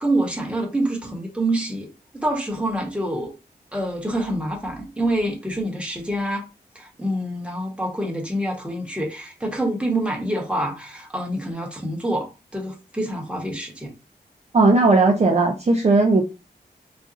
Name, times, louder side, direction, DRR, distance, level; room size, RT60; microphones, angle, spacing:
voice 1, 0.0-1.9 2.1-3.3 3.7-6.5 6.7-12.3 12.5-13.9, right 1 dB, 5° right, -1 dB, 1.2 m, -26 dB
voice 2, 14.5-16.2, right 3 dB, 40° right, 1 dB, 0.5 m, -16 dB
4.2 x 2.3 x 2.5 m, 0.30 s
wide cardioid pair, 75°, 17 cm